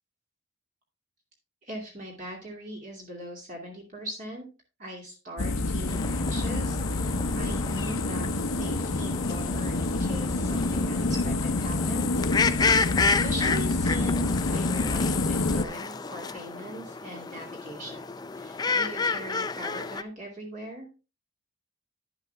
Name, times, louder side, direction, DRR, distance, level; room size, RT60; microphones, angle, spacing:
voice 1, 1.6-4.4 4.8-12.2 12.8-18.0 18.3-20.9, right 1 dB, 40° right, -1 dB, 2.5 m, -41 dB
sound 1, 5.4-15.6, left 2 dB, 85° left, 0.9 m, -27 dB
sound 2, 5.9-20.0, left 4 dB, 20° left, 0.4 m, -31 dB
11.0 x 8.0 x 3.4 m, 0.31 s
head